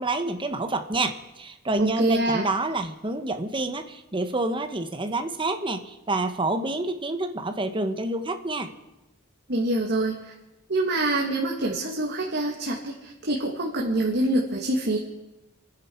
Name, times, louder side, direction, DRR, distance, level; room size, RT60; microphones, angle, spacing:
voice 1, 0.0-8.7, right 2 dB, 25° right, 7 dB, 1.1 m, -28 dB
voice 2, 1.8-2.4 9.5-10.3 10.7-15.0, right 1 dB, 55° right, -1 dB, 1.9 m, -25 dB
29.0 x 10.0 x 4.5 m, 0.99 s
head